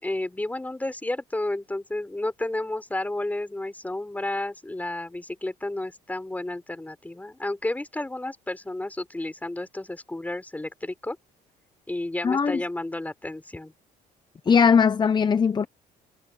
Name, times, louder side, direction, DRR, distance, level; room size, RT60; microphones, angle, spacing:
voice 1, 0.0-11.2 11.9-13.7, left 2 dB, 10° left, 3.9 m, -31 dB
voice 2, 12.2-12.6 14.5-15.7, left 6 dB, 25° left, 0.8 m, -19 dB
cardioid pair, 110°, 17 cm